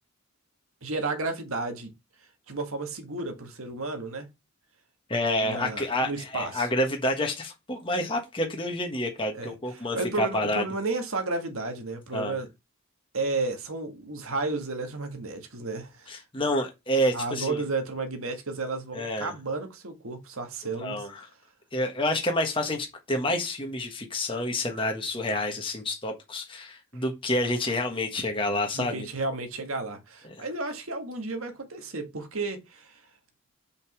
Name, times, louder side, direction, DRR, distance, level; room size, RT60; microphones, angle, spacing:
voice 1, 0.8-1.9 2.5-4.3 5.4-6.7 9.3-12.5 13.1-16.2 17.1-21.1 28.7-33.0, right 3 dB, 75° right, 1.9 m, -32 dB
voice 2, 5.1-10.6 12.1-12.4 16.1-17.6 18.9-19.3 20.8-21.2 21.7-29.1 30.3-30.5, left 1 dB, 25° left, 1.4 m, -28 dB
5.4 x 5.2 x 6.2 m
head